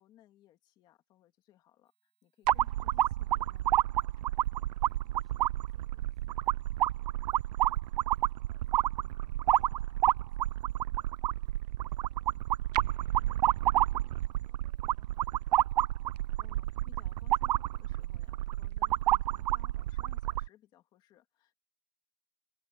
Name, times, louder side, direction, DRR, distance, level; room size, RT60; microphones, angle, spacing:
voice 1, 0.0-4.4 16.4-21.5, left 13 dB, 20° left, 2.4 m, -63 dB
sound 1, 2.5-20.5, right 14 dB, 85° right, 0.4 m, -30 dB
voice 2, 4.9-15.9, equal, ahead, 7.1 m, -77 dB
supercardioid pair, 175°, 21 cm